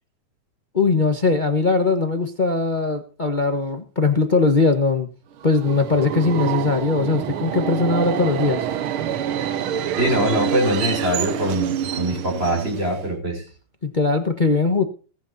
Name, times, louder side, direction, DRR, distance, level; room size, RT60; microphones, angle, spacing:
voice 1, 0.7-5.1 5.4-8.7 13.8-14.8, left 3 dB, 85° left, 6 dB, 0.4 m, -20 dB
Subway metro underground, 5.4-13.1, right 9 dB, 65° right, 1.5 m, -27 dB
voice 2, 10.0-13.4, equal, 20° right, 2 dB, 6.4 m, -23 dB
21.5 x 10.5 x 2.8 m, 0.35 s
omnidirectional pair, 3.3 m